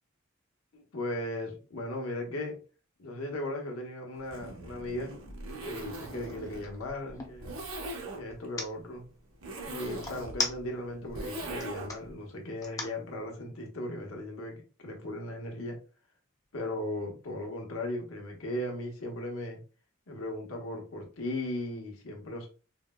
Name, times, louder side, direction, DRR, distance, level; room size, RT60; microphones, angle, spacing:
voice 1, 0.7-2.6 3.0-5.1 5.6-7.6 8.1-9.0 9.6-15.7 16.5-19.6 20.1-22.5, left 1 dB, 75° left, 2 dB, 1.0 m, -37 dB
Zipper (clothing), 4.2-12.1, right 2 dB, 85° right, 1.0 m, -41 dB
sound 1, 5.2-5.4 5.8-7.4 8.3-8.7 10.0-11.0 11.4-12.0 12.6-13.0, left 2 dB, 15° left, 0.6 m, -36 dB
4.6 x 2.1 x 2.2 m, 0.34 s
head